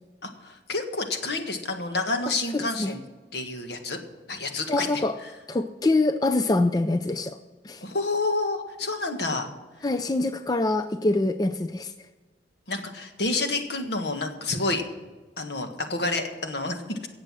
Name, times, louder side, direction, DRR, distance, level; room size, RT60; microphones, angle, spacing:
voice 1, 0.2-3.0 3.3-4.0 4.3-5.3 7.8-9.5 12.7-14.8 15.4-17.1, left 2 dB, 65° left, 5 dB, 1.6 m, -29 dB
voice 2, 2.5-2.9 4.7-5.1 5.5-7.4 7.6-7.8 9.8-11.9, left 2 dB, 20° left, 9 dB, 0.4 m, -24 dB
17.0 x 7.7 x 6.2 m, 1.3 s
head